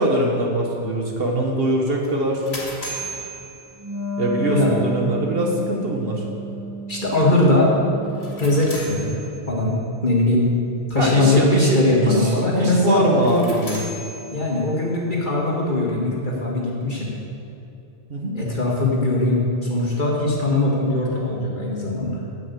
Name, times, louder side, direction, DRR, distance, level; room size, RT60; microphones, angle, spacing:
voice 1, 0.0-2.4 4.2-6.2 11.0-13.8 18.1-18.4, right 1 dB, 60° right, 0 dB, 1.4 m, -22 dB
sound 1, 2.0-4.3 8.0-9.7 13.1-14.9, right 1 dB, 65° left, 2.4 m, -37 dB
Wind instrument woodwind instrument, 3.8-8.9, right 2 dB, 15° right, 0.9 m, -31 dB
voice 2, 6.9-7.7 8.4-9.1 9.5-9.7 10.0-10.5 10.9-13.4 14.3-17.1 18.3-19.4 19.7-22.2, left 2 dB, 45° left, -4 dB, 1.9 m, -20 dB
8.3 x 7.5 x 8.2 m, 2.7 s
omnidirectional pair, 1.2 m